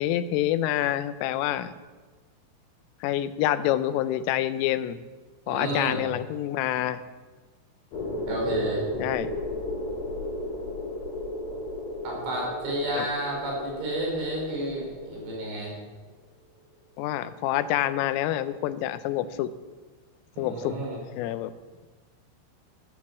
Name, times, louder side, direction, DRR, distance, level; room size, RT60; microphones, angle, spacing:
voice 1, 0.0-1.7 3.0-5.0 5.5-7.0 9.0-9.3 13.0-13.1 17.0-19.5 20.4-20.8 21.1-21.5, left 12 dB, 85° left, 13 dB, 3.2 m, -27 dB
voice 2, 5.5-6.0 8.3-8.8 12.1-15.7 20.4-21.0, right 1 dB, 65° right, -3 dB, 7.1 m, -31 dB
sound 1, 7.9-15.7, left 1 dB, 50° left, 5.2 m, -34 dB
14.0 x 13.0 x 7.3 m, 1.3 s
omnidirectional pair, 5.9 m